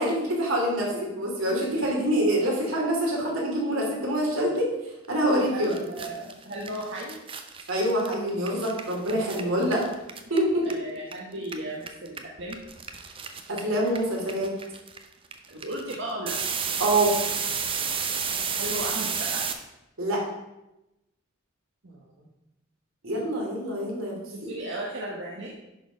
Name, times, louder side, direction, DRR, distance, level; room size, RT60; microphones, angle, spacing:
voice 1, 0.0-4.7 5.1-5.7 7.7-9.8 10.3-10.6 13.5-14.5 16.8-17.1 20.0-20.2 23.0-24.2 24.4-24.5, right 1 dB, 80° right, -2 dB, 2.8 m, -25 dB
sound 1, 5.3-5.4 5.6-11.1 11.4-19.5, right 6 dB, 25° right, 0.6 m, -32 dB
voice 2, 5.5-7.2 10.6-12.6 15.5-16.3 18.6-19.4 21.8-22.3 24.3-25.5, right 1 dB, 60° right, -4 dB, 1.3 m, -35 dB
11.0 x 4.3 x 5.1 m, 0.93 s
head